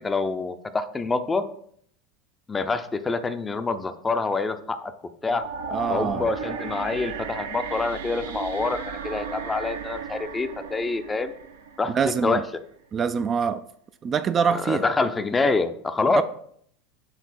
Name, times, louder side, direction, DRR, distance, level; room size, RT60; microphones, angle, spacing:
voice 1, 0.0-1.4 2.5-4.9 5.2-5.4 5.9-11.3 11.8-11.9 12.2-12.4 14.5-16.2, left 3 dB, 20° left, 0.6 m, -26 dB
sound 1, 5.3-12.4, right 5 dB, 75° right, 0.7 m, -35 dB
voice 2, 5.7-6.3 11.9-12.4 12.9-13.6 14.0-14.8 16.1-16.2, right 6 dB, 35° right, 0.4 m, -24 dB
7.2 x 3.6 x 4.1 m
hypercardioid pair, 85°, 0 cm